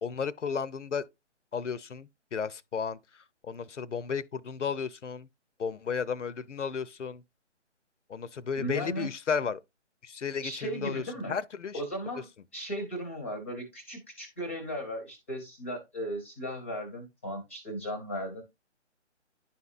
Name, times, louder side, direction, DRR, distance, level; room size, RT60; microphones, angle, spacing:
voice 1, 0.0-1.0 1.5-3.0 3.4-5.3 5.6-7.2 8.1-9.6 10.0-11.0 11.3-11.8, left 6 dB, 80° left, 0.6 m, -33 dB
voice 2, 8.6-9.1 10.4-11.3 11.7-12.3 12.5-18.4, equal, 10° left, 0.6 m, -36 dB
10.5 x 4.2 x 2.4 m
figure-of-eight pair, 150°, 36 cm